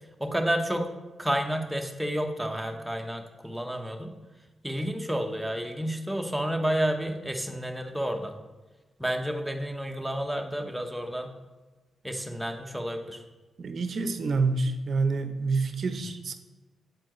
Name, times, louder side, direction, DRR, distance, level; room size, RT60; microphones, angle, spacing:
voice 1, 0.2-0.9 1.2-4.1 4.6-8.3 9.0-11.3 12.0-13.2, equal, 5° right, 3 dB, 0.9 m, -30 dB
voice 2, 13.6-16.3, right 3 dB, 65° right, 8 dB, 0.6 m, -27 dB
7.8 x 4.3 x 3.1 m, 1.2 s
cardioid pair, 55°, 0 cm